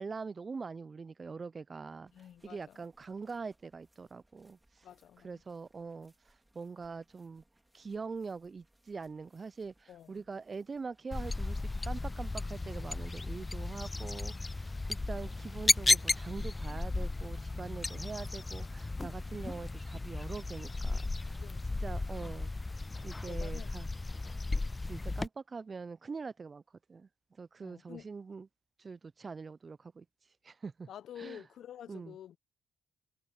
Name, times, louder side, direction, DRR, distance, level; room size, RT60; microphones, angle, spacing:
voice 1, 0.0-2.1 2.4-4.8 5.2-7.4 7.7-21.4 21.8-22.5 23.0-23.9 24.8-26.6 26.9-27.1 27.4-28.5 28.8-30.1 30.4-30.9 31.2-31.4 31.9-32.2, right 4 dB, 40° right, 0.6 m, -43 dB
voice 2, 2.1-2.8 4.8-5.3 9.9-10.2 17.9-18.4 21.4-22.0 23.2-23.7 27.6-28.1 30.9-32.4, left 10 dB, 70° left, 1.1 m, -50 dB
sound 1, 2.1-13.7, right 1 dB, 10° right, 4.0 m, -72 dB
sound 2, 11.1-25.3, left 2 dB, 25° left, 0.3 m, -34 dB
supercardioid pair, 55°, 0 cm